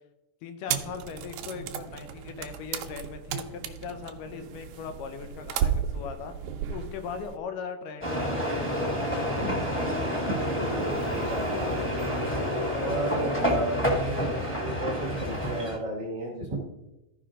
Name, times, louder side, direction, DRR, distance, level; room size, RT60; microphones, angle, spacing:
voice 1, 0.4-6.3 6.7-8.8, left 6 dB, 85° left, 7 dB, 2.4 m, -39 dB
sound 1, 0.7-7.4, right 9 dB, 80° right, 2.0 m, -34 dB
sound 2, 8.0-15.8, equal, 5° left, 1.1 m, -28 dB
voice 2, 9.2-9.6 10.0-11.9 12.3-16.6, right 2 dB, 55° right, -1 dB, 1.3 m, -34 dB
14.5 x 5.3 x 3.7 m, 0.95 s
omnidirectional pair, 3.7 m